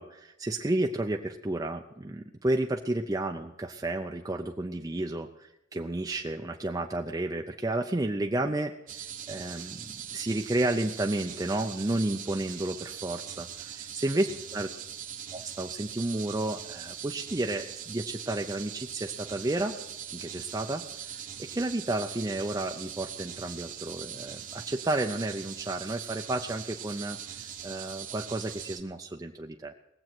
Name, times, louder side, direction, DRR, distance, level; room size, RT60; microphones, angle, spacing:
voice 1, 0.0-8.7 9.3-14.3 14.5-14.7 15.3-19.7 20.1-29.7, right 2 dB, 20° right, 3 dB, 0.5 m, -32 dB
sound 1, 8.9-28.8, right 9 dB, 45° right, 0.9 m, -41 dB
18.5 x 7.7 x 6.0 m, 0.90 s
head